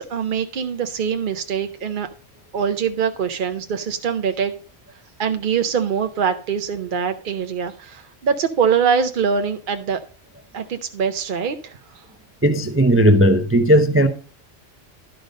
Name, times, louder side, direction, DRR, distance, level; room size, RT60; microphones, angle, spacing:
voice 1, 0.0-2.1 2.5-4.5 5.2-10.0 10.5-11.8, right 6 dB, 50° right, 0.7 m, -23 dB
voice 2, 12.4-14.1, right 1 dB, 15° right, 0.5 m, -15 dB
12.0 x 5.2 x 5.1 m
omnidirectional pair, 1.2 m